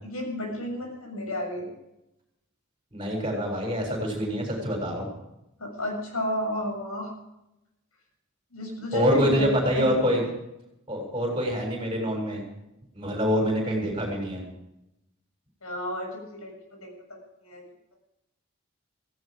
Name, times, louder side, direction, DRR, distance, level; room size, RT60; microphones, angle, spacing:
voice 1, 0.0-1.7 5.6-7.1 8.5-9.5 9.8-9.9 15.6-17.7, left 1 dB, 85° left, 2 dB, 7.0 m, -32 dB
voice 2, 2.9-5.1 8.9-10.2 10.9-12.4 12.9-14.4, equal, 25° right, 0 dB, 7.2 m, -25 dB
17.0 x 17.0 x 5.2 m, 0.88 s
head